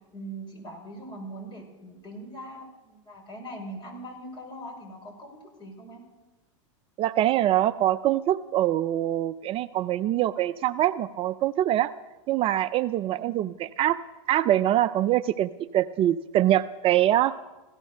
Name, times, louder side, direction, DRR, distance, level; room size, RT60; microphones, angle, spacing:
voice 1, 0.1-6.0 13.2-13.3, right 1 dB, 30° left, 2 dB, 5.9 m, -41 dB
voice 2, 7.0-11.9 12.3-14.0 14.3-17.3, right 13 dB, 35° right, 12 dB, 0.4 m, -24 dB
16.5 x 13.5 x 6.4 m, 1.1 s
hypercardioid pair, 115°, 17 cm